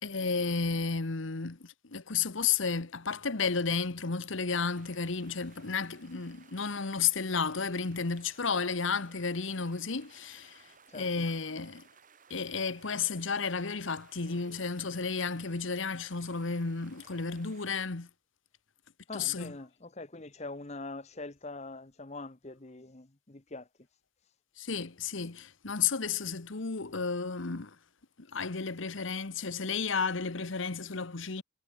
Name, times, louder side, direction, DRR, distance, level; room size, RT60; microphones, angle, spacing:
voice 1, 0.0-11.8 12.3-18.1 19.1-19.5 24.6-27.8 28.2-31.4, left 5 dB, 70° left, 1.2 m, -32 dB
sound 1, 4.7-17.9, right 6 dB, 40° right, 2.3 m, -61 dB
voice 2, 10.9-11.2 19.1-23.7, left 2 dB, 35° left, 1.1 m, -43 dB
head